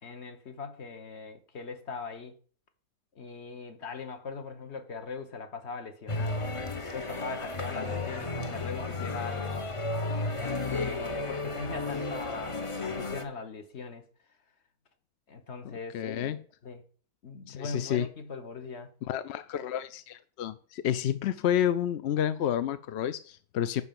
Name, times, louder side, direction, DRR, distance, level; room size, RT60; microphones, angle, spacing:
voice 1, 0.0-2.3 3.1-6.5 6.9-9.7 10.4-14.0 15.3-16.8 17.2-18.9, left 4 dB, 50° left, 1.5 m, -40 dB
sound 1, 6.1-13.2, left 2 dB, 25° left, 0.7 m, -33 dB
voice 2, 15.6-16.4 17.5-18.1 19.1-23.8, left 10 dB, 65° left, 0.7 m, -30 dB
11.0 x 4.1 x 7.5 m
omnidirectional pair, 1.6 m